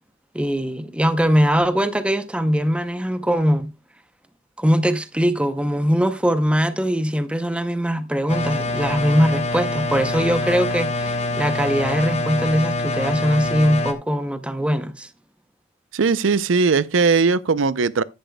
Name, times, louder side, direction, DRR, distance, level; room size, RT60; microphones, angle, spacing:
voice 1, 0.3-3.7 4.6-15.1, equal, 5° right, 0.6 m, -21 dB
sound 1, 8.3-13.9, left 2 dB, 35° left, 1.0 m, -25 dB
voice 2, 15.9-18.0, right 4 dB, 75° right, 0.6 m, -19 dB
13.0 x 10.5 x 2.2 m
head